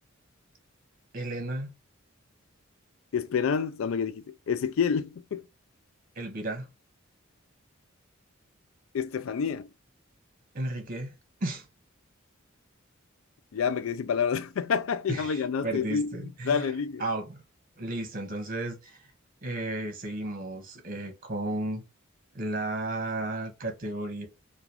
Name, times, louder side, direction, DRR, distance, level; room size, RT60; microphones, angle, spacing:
voice 1, 1.1-1.7 6.2-6.7 10.5-11.1 11.4-11.6 15.1-16.7 17.0-17.4 17.8-19.0 19.4-21.8 22.3-24.3, right 2 dB, 45° right, 1.1 m, -33 dB
voice 2, 3.1-5.4 8.9-9.7 13.5-16.2 16.4-17.0, left 6 dB, 75° left, 0.4 m, -28 dB
4.0 x 2.3 x 2.8 m
head